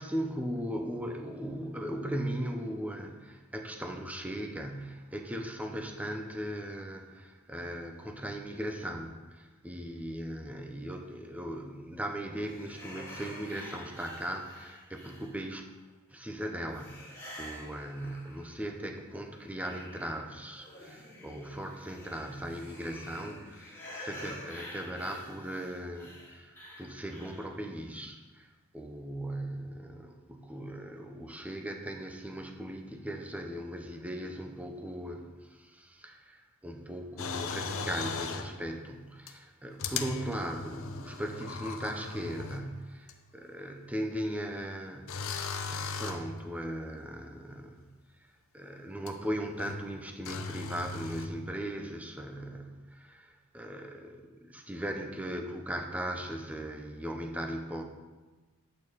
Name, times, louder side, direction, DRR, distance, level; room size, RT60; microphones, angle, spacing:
voice 1, 0.0-15.6 16.1-28.5 28.7-47.9 48.5-57.8, equal, 5° right, 3 dB, 0.9 m, -38 dB
sound 1, 12.5-15.6 16.7-18.7 19.1-27.6, left 1 dB, 10° left, 2.0 m, -48 dB
sound 2, 37.2-38.5 39.3-39.4 39.8-42.8 43.1-43.2 45.1-46.4 49.1-49.2 49.6-49.9 50.2-51.3, left 5 dB, 65° left, 0.8 m, -37 dB
11.0 x 8.9 x 4.1 m, 1.2 s
head